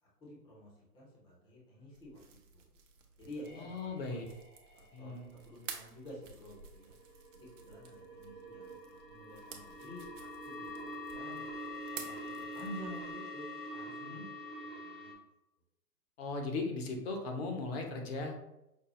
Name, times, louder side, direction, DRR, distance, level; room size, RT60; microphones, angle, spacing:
voice 1, 0.0-2.7 3.2-4.2 5.0-6.9 7.3-11.6 11.9-14.3 14.7-15.1, equal, 10° left, -5 dB, 0.7 m, -50 dB
sound 1, 1.9-13.1, right 6 dB, 50° right, 0.8 m, -52 dB
sound 2, 3.4-5.2 6.0-15.1, left 1 dB, 20° right, 0.3 m, -45 dB
voice 2, 3.6-4.3 4.9-5.3 14.0-14.2 16.2-18.3, left 3 dB, 40° left, 2 dB, 0.9 m, -38 dB
5.3 x 2.0 x 3.0 m, 0.89 s
hypercardioid pair, 135°, 48 cm